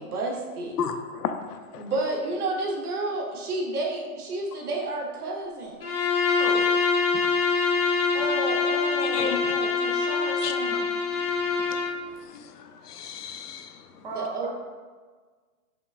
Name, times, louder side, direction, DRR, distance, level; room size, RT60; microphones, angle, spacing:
voice 1, 0.0-0.7 1.8-5.8 8.1-10.9 14.1-14.5, right 2 dB, 75° right, 0 dB, 1.0 m, -31 dB
voice 2, 0.8-1.8 9.1-9.5 10.4-10.5 12.3-12.5 12.8-13.7, left 7 dB, 90° left, 8 dB, 0.5 m, -32 dB
Bowed string instrument, 5.8-12.0, left 5 dB, 40° left, 0.4 m, -25 dB
voice 3, 14.0-14.5, right 2 dB, 35° right, -2 dB, 0.6 m, -35 dB
5.3 x 2.2 x 2.4 m, 1.4 s
hypercardioid pair, 165°, 45 cm